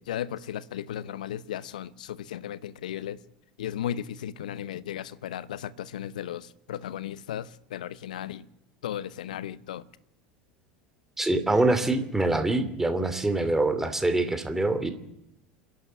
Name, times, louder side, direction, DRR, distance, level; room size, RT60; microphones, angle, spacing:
voice 1, 0.0-3.2 3.6-8.5 8.8-9.8, left 10 dB, 70° left, 0.8 m, -35 dB
voice 2, 11.2-14.9, right 2 dB, 10° right, 2.7 m, -25 dB
27.0 x 11.5 x 9.9 m
figure-of-eight pair, 75°, 4 cm